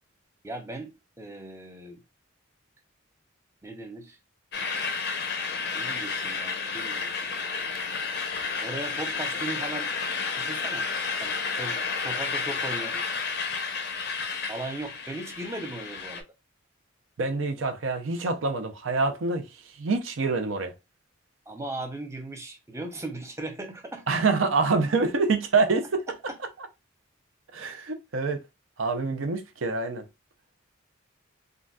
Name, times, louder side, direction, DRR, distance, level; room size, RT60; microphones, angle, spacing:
voice 1, 0.4-2.0 3.6-4.2 5.7-7.1 8.6-9.9 10.4-10.9 11.2-13.0 14.5-16.2 21.5-24.1 26.3-26.4, right 2 dB, 15° right, 0.4 m, -38 dB
sound 1, 4.5-16.2, left 5 dB, 50° left, 0.5 m, -31 dB
voice 2, 17.2-19.4 19.8-20.7 24.1-25.8 27.5-28.4 28.8-30.0, right 4 dB, 75° right, 0.6 m, -26 dB
3.8 x 2.2 x 2.2 m
head